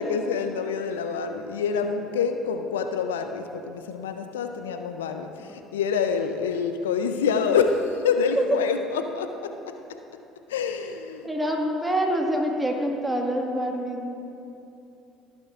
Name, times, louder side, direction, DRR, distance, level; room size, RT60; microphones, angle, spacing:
voice 1, 0.0-10.0 10.5-11.3, left 6 dB, 85° left, 7 dB, 0.4 m, -27 dB
voice 2, 11.2-14.1, equal, 10° right, 0 dB, 1.7 m, -26 dB
15.5 x 9.8 x 2.4 m, 2.9 s
hypercardioid pair, 65°, 0 cm